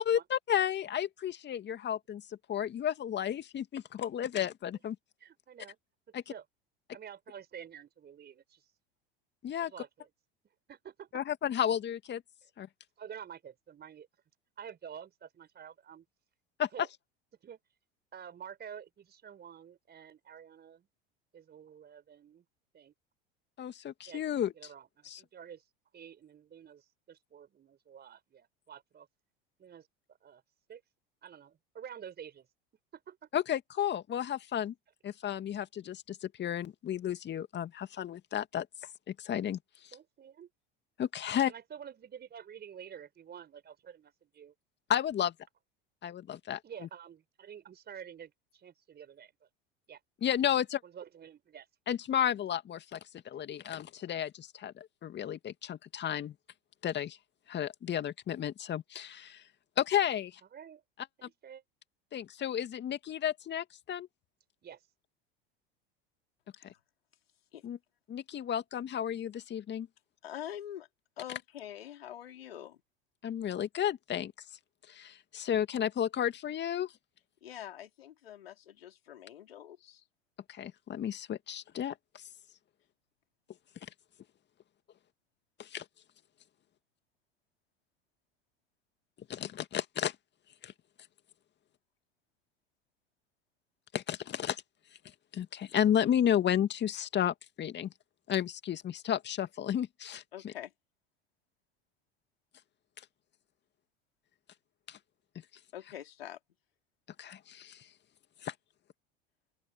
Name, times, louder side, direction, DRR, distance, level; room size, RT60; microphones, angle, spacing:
voice 1, 0.0-2.2 2.5-5.0 6.1-6.2 9.4-9.7 11.1-12.2 12.6-12.7 16.6-16.7 23.6-24.5 25.1-25.2 33.3-34.7 35.0-38.7 39.1-39.6 41.0-41.5 44.9-45.3 46.0-46.6 50.2-50.8 51.9-53.0 53.3-56.3 56.8-57.2 57.5-59.4 59.8-60.4 62.1-64.1 67.6-67.8 68.1-69.9 73.2-74.3 74.9-76.9 80.5-82.2 85.6-85.8 89.3-90.2 90.6-90.7 93.9-94.6 95.3-97.9 98.3-100.5 104.9-105.0 107.2-107.9 108.4-108.5, left 10 dB, 35° left, 2.3 m, -32 dB
voice 2, 5.2-5.8 6.3-6.4 6.9-8.7 9.6-10.1 10.7-11.1 13.0-14.1 14.6-16.0 16.7-16.9 17.4-17.6 18.1-20.9 21.3-22.4 22.7-22.9 24.1-25.6 25.9-29.1 29.6-30.4 30.7-30.8 31.2-32.5 32.9-33.3 39.9-40.5 41.5-44.5 46.6-49.5 49.9-50.0 50.8-51.7 60.5-60.8 61.2-61.6 64.6-64.8, right 8 dB, 35° right, 4.8 m, -49 dB
voice 3, 70.2-70.9 71.2-72.8 77.4-80.0 100.3-100.7 105.7-106.4, left 11 dB, 80° left, 4.4 m, -45 dB
open air
hypercardioid pair, 80°, 29 cm